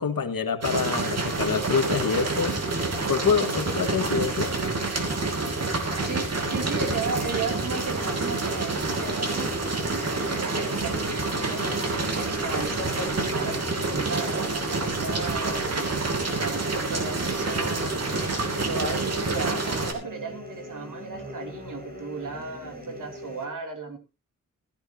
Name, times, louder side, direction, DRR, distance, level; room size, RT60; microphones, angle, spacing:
voice 1, 0.0-2.6 3.1-4.5 11.4-11.5, left 6 dB, 85° left, 6 dB, 1.9 m, -26 dB
sound 1, 0.6-19.9, right 3 dB, 50° right, 2.9 m, -28 dB
sound 2, 6.0-23.4, left 1 dB, 30° right, 5.0 m, -41 dB
voice 2, 6.0-11.6 12.2-18.0 18.4-24.0, right 3 dB, 70° right, 4 dB, 3.0 m, -35 dB
16.0 x 14.0 x 2.9 m, 0.29 s
wide cardioid pair, 155°, 33 cm